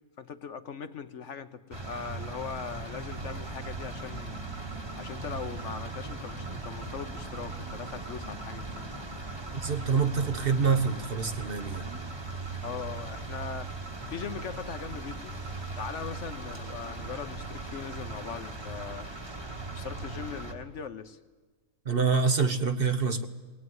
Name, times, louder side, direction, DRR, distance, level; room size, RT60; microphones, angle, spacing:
voice 1, 0.2-4.4 4.9-8.9 12.6-15.3 15.8-19.1 19.7-21.2, left 6 dB, 60° left, 1.1 m, -40 dB
sound 1, 1.7-20.5, right 3 dB, 20° right, 1.6 m, -39 dB
voice 2, 9.5-11.9 21.8-23.3, right 5 dB, 45° right, 1.1 m, -26 dB
20.5 x 19.0 x 9.4 m
omnidirectional pair, 1.5 m